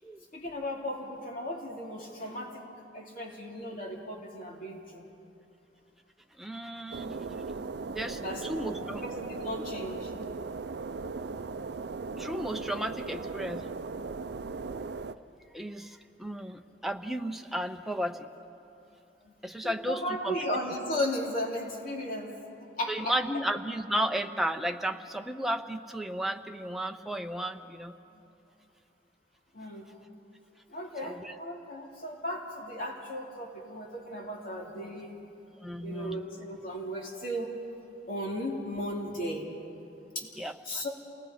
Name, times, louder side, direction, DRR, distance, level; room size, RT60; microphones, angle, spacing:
voice 1, 0.3-2.6 2.9-5.1 8.2-10.1 19.2-19.3 19.6-23.2 28.1-28.2 29.5-29.9 30.7-35.2 35.8-37.5 38.1-39.5 40.1-40.9, left 1 dB, 50° left, -1 dB, 2.9 m, -36 dB
voice 2, 6.4-7.2 7.9-9.0 12.2-13.7 15.5-18.3 19.4-20.3 22.9-27.9 31.0-31.4 35.6-36.2 40.4-40.8, equal, ahead, 5 dB, 0.8 m, -34 dB
sound 1, 6.9-15.1, right 4 dB, 65° right, 0.5 m, -38 dB
28.5 x 19.0 x 5.1 m, 2.7 s
head